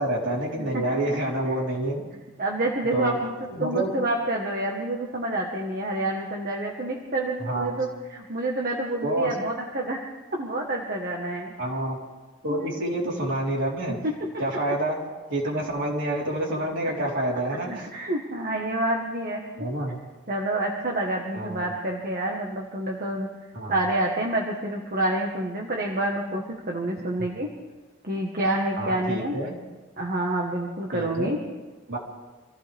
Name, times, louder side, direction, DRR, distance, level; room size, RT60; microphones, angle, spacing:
voice 1, 0.0-2.0 2.9-3.1 3.6-3.9 7.4-7.8 9.0-9.3 11.6-12.0 12.4-14.0 14.4-15.0 15.3-17.9 19.6-20.0 21.3-21.6 23.5-23.7 28.8-29.6 30.9-31.4 31.9-32.0, right 1 dB, 55° right, -4 dB, 3.9 m, -27 dB
voice 2, 0.7-1.2 1.4-1.6 2.4-10.0 10.3-11.5 12.5-12.7 14.0-14.2 17.0-17.4 17.9-19.4 20.3-23.3 23.7-27.5 28.0-29.4 30.0-31.4, right 1 dB, 40° right, 0 dB, 1.4 m, -28 dB
26.0 x 15.5 x 3.5 m, 1.2 s
head